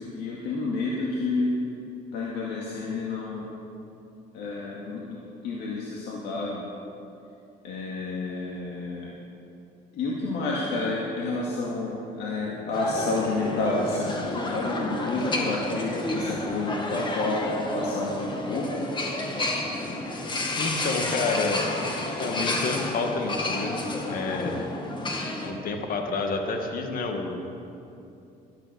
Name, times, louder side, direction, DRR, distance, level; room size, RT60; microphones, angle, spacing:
voice 1, 0.0-1.5 2.1-3.5 4.3-6.6 7.6-9.1 9.9-18.9, left 2 dB, 75° left, -4 dB, 2.1 m, -30 dB
sound 1, 12.7-25.5, left 2 dB, 25° left, 1.9 m, -31 dB
voice 2, 20.6-21.6 22.2-23.8 24.1-24.7 25.4-27.4, left 4 dB, 60° left, 3 dB, 1.8 m, -29 dB
13.0 x 12.5 x 6.9 m, 2.7 s
cardioid pair, 110°, 17 cm